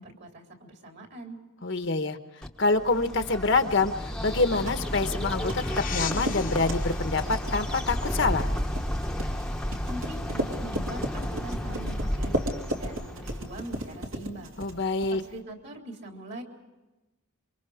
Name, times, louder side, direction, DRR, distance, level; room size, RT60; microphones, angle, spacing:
voice 1, 0.0-1.4 9.8-12.4 12.7-14.6 15.1-16.4, right 1 dB, 50° right, 2 dB, 3.7 m, -42 dB
voice 2, 1.6-2.2 2.6-8.5 14.6-15.2, left 3 dB, 55° left, 8 dB, 1.2 m, -26 dB
Bird, 2.4-13.8, equal, 5° left, 1.1 m, -32 dB
sound 1, 4.3-15.4, equal, 70° right, 2.9 m, -36 dB
sound 2, 4.4-9.4, left 7 dB, 40° left, 1.1 m, -40 dB
27.5 x 24.5 x 5.0 m, 1.1 s
head